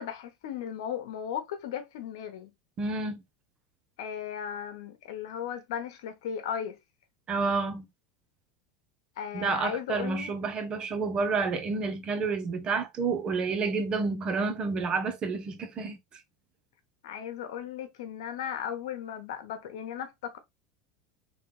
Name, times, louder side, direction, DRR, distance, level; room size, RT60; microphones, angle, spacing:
voice 1, 0.0-2.5 4.0-6.8 9.2-10.5 17.0-20.4, left 9 dB, 80° left, 1.1 m, -36 dB
voice 2, 2.8-3.2 7.3-7.9 9.3-16.2, right 4 dB, 35° right, 1.0 m, -29 dB
3.4 x 3.4 x 3.2 m
supercardioid pair, 110°, 3 cm